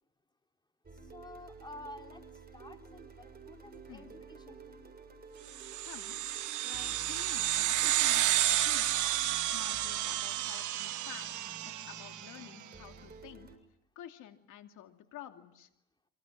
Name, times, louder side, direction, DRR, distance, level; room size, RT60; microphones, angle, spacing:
sound 1, 0.8-13.6, right 3 dB, 30° right, 7.1 m, -52 dB
voice 1, 1.1-2.2 2.5-5.0 7.8-7.9, left 1 dB, 15° left, 3 dB, 4.0 m, -51 dB
sound 2, 5.5-12.4, right 13 dB, 75° right, 1.0 m, -31 dB
voice 2, 5.8-6.2 6.6-9.0 9.5-13.5 14.0-15.7, left 12 dB, 90° left, 5 dB, 2.8 m, -50 dB
28.0 x 25.5 x 7.6 m, 0.83 s
cardioid pair, 90°, 30 cm